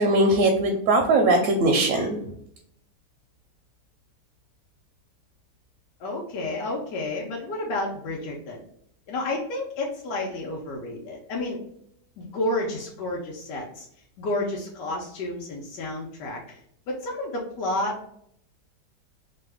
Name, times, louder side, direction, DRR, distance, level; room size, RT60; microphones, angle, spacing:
voice 1, 0.0-2.1, right 2 dB, 70° right, 2 dB, 0.9 m, -20 dB
voice 2, 6.0-8.6 9.1-11.6 12.2-13.9 14.2-16.6 16.9-18.1, left 2 dB, 85° left, -2 dB, 1.3 m, -30 dB
3.1 x 2.1 x 3.3 m, 0.70 s
omnidirectional pair, 1.8 m